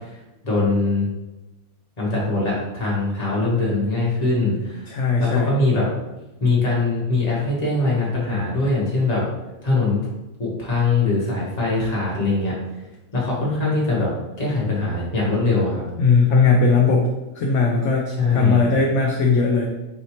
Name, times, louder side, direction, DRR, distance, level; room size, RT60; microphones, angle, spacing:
voice 1, 0.4-1.1 2.0-5.9 6.4-9.2 9.6-10.0 10.4-12.6 13.1-14.1 14.4-15.8 18.1-18.7, left 3 dB, 30° left, -6 dB, 1.3 m, -22 dB
voice 2, 4.9-5.5 16.0-17.1 17.3-19.7, left 4 dB, 65° left, -1 dB, 0.8 m, -18 dB
4.8 x 2.7 x 3.0 m, 1.0 s
omnidirectional pair, 1.6 m